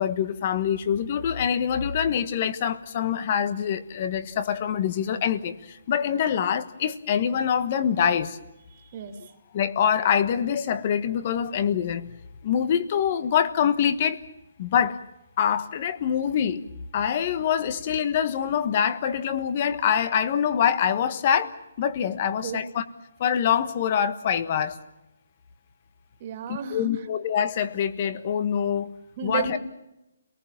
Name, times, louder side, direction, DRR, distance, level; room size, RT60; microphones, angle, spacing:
voice 1, 0.0-8.4 9.5-12.1 12.4-14.2 14.6-15.0 15.4-16.6 16.9-21.5 21.8-22.8 23.2-24.8 26.5-28.9 29.2-29.6, left 8 dB, 30° left, 13 dB, 1.4 m, -25 dB
voice 2, 8.7-9.3 22.4-22.6 26.2-26.9 29.2-29.6, right 7 dB, 25° right, 6 dB, 2.5 m, -32 dB
30.0 x 19.0 x 7.4 m, 0.94 s
hypercardioid pair, 175°, 0 cm